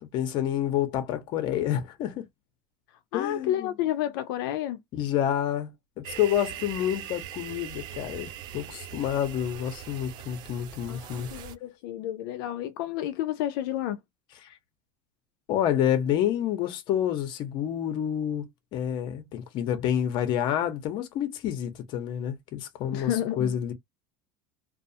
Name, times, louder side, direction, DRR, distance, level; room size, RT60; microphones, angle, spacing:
voice 1, 0.0-2.3 3.1-3.7 4.9-5.7 6.0-11.3 14.4-14.5 15.5-23.1 23.4-23.7, left 10 dB, 45° left, 0.7 m, -28 dB
voice 2, 3.1-4.8 10.9-14.0 22.9-23.5, left 12 dB, 80° left, 0.4 m, -30 dB
sound 1, 6.0-11.6, right 11 dB, 40° right, 0.3 m, -41 dB
2.3 x 2.3 x 2.6 m
cardioid pair, 165°, 11 cm